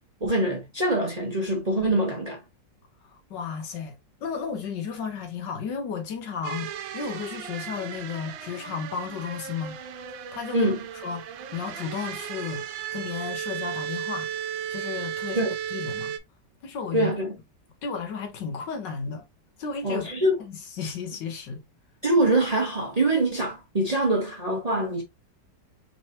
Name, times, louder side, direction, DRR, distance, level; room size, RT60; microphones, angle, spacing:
voice 1, 0.2-2.4 10.5-10.8 15.3-15.5 16.9-17.3 19.8-20.3 22.0-25.0, right 1 dB, 30° right, 0.8 m, -24 dB
voice 2, 3.0-9.8 10.3-11.3 11.5-12.7 12.9-14.3 14.7-16.2 16.6-17.1 17.8-19.3 19.6-20.1 20.4-21.6, left 6 dB, 75° left, 1.7 m, -34 dB
sound 1, 6.4-16.2, right 9 dB, 85° right, 1.4 m, -35 dB
4.5 x 3.0 x 2.9 m
omnidirectional pair, 2.0 m